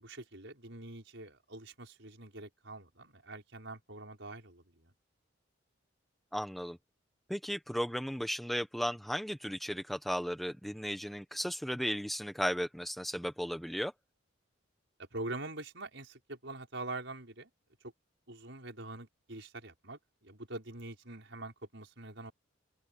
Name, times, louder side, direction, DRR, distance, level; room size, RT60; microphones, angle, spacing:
voice 1, 0.0-4.9 15.0-17.5 18.3-22.3, right 2 dB, 65° right, 6.0 m, -44 dB
voice 2, 6.3-6.8 7.3-13.9, equal, ahead, 1.1 m, -35 dB
open air
head